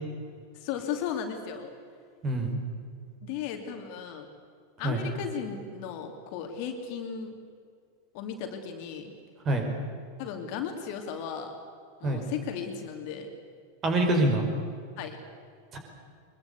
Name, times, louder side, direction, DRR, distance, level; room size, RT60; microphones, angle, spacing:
voice 1, 0.5-1.7 3.2-4.3 4.8-7.3 8.1-9.1 10.2-11.5 12.0-13.3 15.0-15.2, left 7 dB, 45° left, 5 dB, 2.8 m, -35 dB
voice 2, 2.2-2.6 4.8-5.0 9.4-9.7 12.0-12.3 13.8-14.5 15.7-15.8, right 1 dB, 30° right, 4 dB, 5.1 m, -25 dB
23.5 x 22.0 x 8.3 m, 2.2 s
figure-of-eight pair, 90°, 0 cm